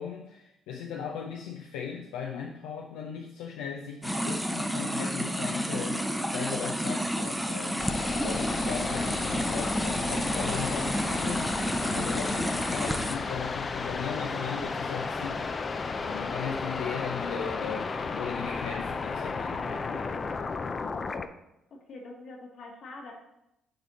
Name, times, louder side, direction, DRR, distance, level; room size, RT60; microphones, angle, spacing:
voice 1, 0.0-6.0 6.3-15.4 15.7-20.2, left 7 dB, 85° left, 0 dB, 0.6 m, -37 dB
sound 1, 4.0-13.2, equal, ahead, 0.7 m, -30 dB
sound 2, 7.8-21.3, left 4 dB, 40° left, 0.5 m, -33 dB
voice 2, 21.7-23.1, left 2 dB, 60° left, 1 dB, 1.5 m, -44 dB
6.6 x 4.3 x 4.0 m, 0.86 s
supercardioid pair, 70°, 0 cm